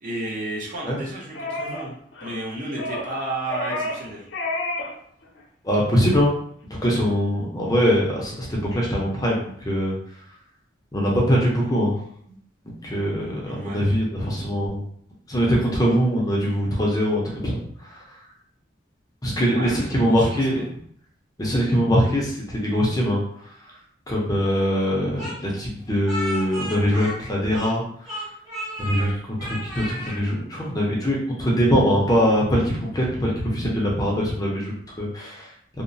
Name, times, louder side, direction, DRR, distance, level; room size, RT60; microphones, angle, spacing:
voice 1, 0.0-4.3 13.5-13.8 19.4-20.3 29.0-29.2, right 1 dB, 45° right, -3 dB, 0.6 m, -32 dB
sound 1, 1.3-1.9 2.1-2.4 2.8-3.1 3.5-4.1 4.3-4.9 5.2-5.4, left 1 dB, 75° left, 0.6 m, -29 dB
voice 2, 5.6-6.3 6.8-10.0 10.9-12.0 12.7-14.8 15.3-18.2 19.2-20.6 21.4-23.2 24.1-27.8 28.2-28.3 28.8-29.1 29.4-34.7 35.0-35.5, equal, 20° left, -3 dB, 0.5 m, -22 dB
Speech, 25.2-27.8 28.0-29.1 29.4-30.2, equal, 20° right, 0.9 m, -33 dB
2.9 x 2.0 x 2.5 m, 0.64 s
head